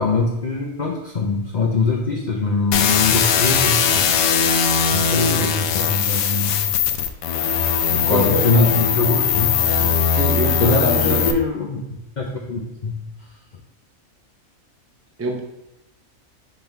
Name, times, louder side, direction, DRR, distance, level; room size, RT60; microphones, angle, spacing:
voice 1, 0.0-4.1 4.9-6.7 7.9-9.9 10.6-11.8 12.2-13.1, left 3 dB, 45° left, -1 dB, 0.6 m, -22 dB
sound 1, 2.7-11.3, left 7 dB, 90° left, 1.1 m, -20 dB
voice 2, 8.1-8.7 10.0-11.3 15.2-15.4, right 1 dB, 15° right, 1 dB, 0.5 m, -25 dB
5.3 x 3.9 x 4.5 m, 0.91 s
omnidirectional pair, 1.4 m